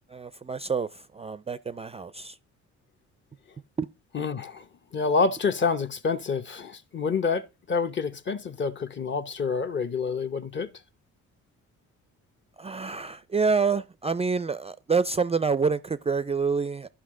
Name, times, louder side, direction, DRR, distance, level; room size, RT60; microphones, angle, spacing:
voice 1, 0.1-2.4 3.8-3.9 12.6-16.9, right 5 dB, 20° right, 0.4 m, -27 dB
voice 2, 4.1-4.6 4.9-10.7, left 5 dB, 40° left, 0.8 m, -27 dB
12.5 x 5.6 x 3.7 m
cardioid pair, 90°, 30 cm